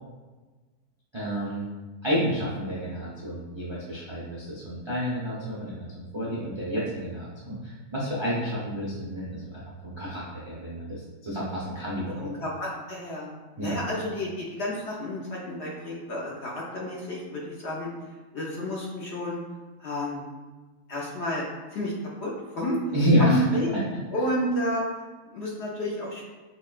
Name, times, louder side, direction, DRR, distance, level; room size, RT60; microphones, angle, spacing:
voice 1, 1.1-1.7 2.0-12.3 13.6-13.8 22.9-23.4, equal, 50° right, -8 dB, 0.3 m, -29 dB
voice 2, 12.2-19.4 19.8-20.2 20.9-22.9 23.2-23.7 24.1-26.2, equal, 60° left, -4 dB, 0.7 m, -31 dB
5.6 x 2.2 x 2.4 m, 1.3 s
omnidirectional pair, 1.6 m